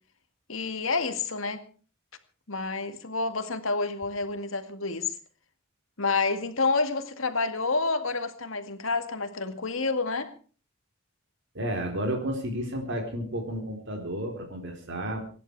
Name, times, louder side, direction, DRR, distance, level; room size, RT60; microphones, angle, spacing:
voice 1, 0.5-1.6 2.5-5.1 6.0-10.3, left 3 dB, 70° left, 8 dB, 2.2 m, -29 dB
voice 2, 11.5-15.2, equal, 60° right, 2 dB, 4.3 m, -32 dB
25.5 x 11.0 x 4.8 m, 0.40 s
head